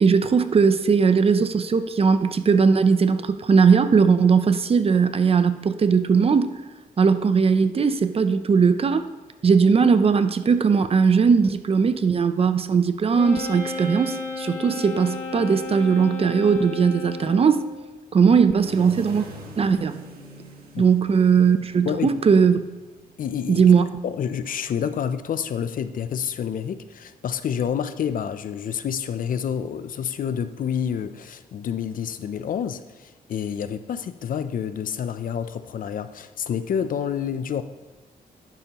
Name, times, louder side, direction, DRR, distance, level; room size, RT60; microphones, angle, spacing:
voice 1, 0.0-6.5 7.0-9.1 9.4-17.7 18.1-19.3 19.6-19.9 20.8-22.6 23.5-23.8, right 5 dB, 40° right, 0.6 m, -19 dB
Wind instrument woodwind instrument, 13.1-17.8, left 3 dB, 25° left, 2.1 m, -34 dB
sound 1, 18.6-26.4 28.0-28.4 36.8-36.9, right 1 dB, 80° right, 1.6 m, -45 dB
voice 2, 23.2-23.6 24.0-37.6, left 8 dB, 65° left, 0.5 m, -28 dB
11.0 x 9.8 x 3.0 m
cardioid pair, 100°, 15 cm